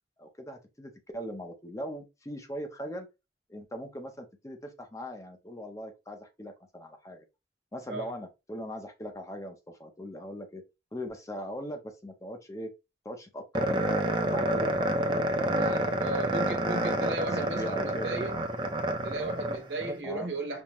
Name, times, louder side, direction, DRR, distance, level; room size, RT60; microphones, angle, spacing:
voice 1, 0.2-3.1 3.5-7.3 7.7-10.6 10.9-12.7 13.0-15.9 16.3-18.2 20.0-20.3, equal, 20° left, 0.6 m, -40 dB
sound 1, 13.5-20.0, right 1 dB, 25° right, 0.5 m, -29 dB
voice 2, 15.5-18.4 19.0-20.6, right 2 dB, 90° right, 1.2 m, -35 dB
5.3 x 2.1 x 3.0 m
head